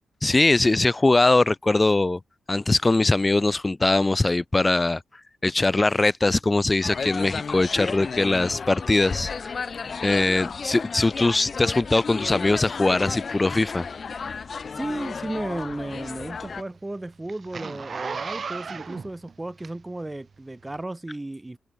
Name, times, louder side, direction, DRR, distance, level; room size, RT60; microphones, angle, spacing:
voice 1, 0.2-2.2 2.5-5.0 5.4-9.5 10.0-13.9, left 2 dB, 25° left, 1.0 m, -21 dB
sound 1, 6.8-16.6, left 5 dB, 50° left, 3.2 m, -33 dB
voice 2, 14.7-21.6, right 2 dB, 20° right, 5.9 m, -34 dB
Zipper (clothing), 15.2-20.1 20.7-20.8, right 5 dB, 50° right, 3.0 m, -36 dB
hypercardioid pair, 40°, 0 cm